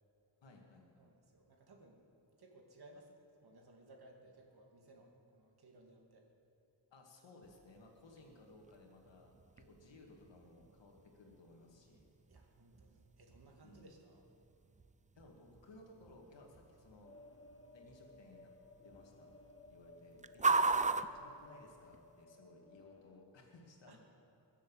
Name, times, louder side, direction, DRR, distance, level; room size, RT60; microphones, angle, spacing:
voice 1, 0.4-1.1 6.9-12.1 13.5-13.9 15.2-17.1 17.7-18.5 18.8-19.3 19.7-24.0, left 2 dB, 85° left, 1 dB, 2.3 m, -60 dB
voice 2, 1.0-2.0 2.4-3.1 3.4-6.3 12.3-14.3 20.6-20.8 23.9-24.0, right 2 dB, 60° right, 1 dB, 2.3 m, -61 dB
sound 1, 7.4-22.2, right 3 dB, 20° right, 0.4 m, -41 dB
sound 2, 17.0-23.2, left 2 dB, 30° left, 1.3 m, -59 dB
21.5 x 7.5 x 7.3 m, 2.7 s
wide cardioid pair, 105°, 43 cm